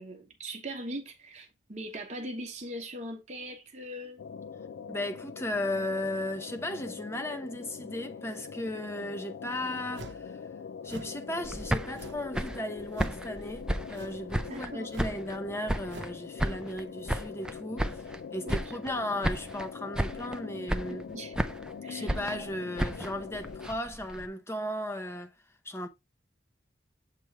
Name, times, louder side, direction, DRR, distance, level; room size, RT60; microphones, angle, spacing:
voice 1, 0.0-4.2 14.5-14.9 18.4-18.6 18.8-19.1 20.9-21.3 21.8-22.1, right 1 dB, 40° right, 1.0 m, -40 dB
sound 1, 4.2-23.7, left 6 dB, 70° left, 0.3 m, -43 dB
voice 2, 4.9-10.4 10.8-18.0 18.3-21.1 21.9-25.3 25.6-25.9, left 1 dB, 15° left, 0.7 m, -36 dB
sound 2, 9.9-10.3 10.8-11.2 11.9-12.3 12.9-13.3 13.9-14.3 14.9-15.2 15.9-16.2, right 2 dB, 75° right, 0.8 m, -46 dB
sound 3, 11.4-14.7 15.0-16.1 16.4-18.2 18.5-19.0 19.2-19.7 19.9-20.4 20.7-21.7 22.1-24.3, right 1 dB, 5° right, 0.4 m, -33 dB
7.6 x 3.0 x 4.5 m
head